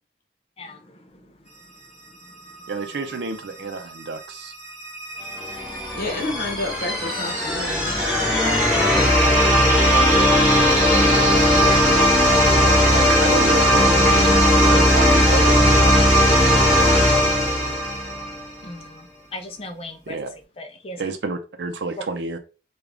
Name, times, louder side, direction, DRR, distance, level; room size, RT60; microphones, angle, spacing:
voice 1, 0.6-1.3 6.0-6.2 9.4-9.7 18.6-20.2 20.6-21.0, left 2 dB, 35° left, 0.5 m, -38 dB
voice 2, 2.7-4.5 12.6-16.0 20.1-20.3 21.0-22.4, right 3 dB, 70° right, 0.5 m, -30 dB
sound 1, 4.6-18.5, equal, 5° right, 1.4 m, -17 dB
voice 3, 5.9-8.4, left 2 dB, 50° left, 1.0 m, -30 dB
3.6 x 2.4 x 3.3 m
head